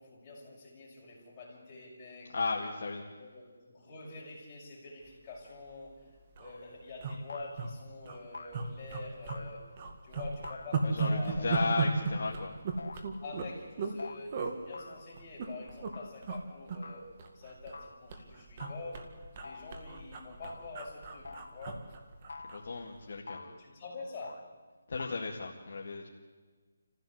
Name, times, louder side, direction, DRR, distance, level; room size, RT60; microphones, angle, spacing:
voice 1, 0.0-2.3 2.6-2.7 3.2-6.0 6.4-9.7 10.0-11.5 12.3-12.4 13.2-17.1 17.3-19.1 19.4-21.9 23.1-24.5, left 3 dB, 20° left, -6 dB, 5.9 m, -46 dB
voice 2, 2.3-3.0 10.8-12.5 22.4-23.4 24.9-26.1, left 4 dB, 50° left, 0 dB, 2.1 m, -35 dB
sound 1, 5.5-5.7 6.0-6.1 6.3-6.5 7.0-7.7 8.0-8.2 8.5-9.5 9.8-14.0 14.3-14.6 15.2-15.9 16.2-16.4 16.7-17.8 18.1-22.7 23.0-23.2, right 4 dB, 30° right, 1.9 m, -35 dB
sound 2, 6.5-6.8 7.3-7.8 8.3-8.8 9.3-9.9 10.4-11.1 11.6-12.3 12.8-13.3 14.0-14.2 14.7-15.3 15.9-16.2 16.8-17.1 17.7-18.1 18.6-19.0 19.4-19.8 20.4-20.8 21.2-21.6 22.3-22.8 23.3-23.7 24.2-24.5 25.0-25.3, left 3 dB, 75° left, 1.6 m, -48 dB
28.0 x 15.5 x 8.1 m, 1.4 s
hypercardioid pair, 170°, 0 cm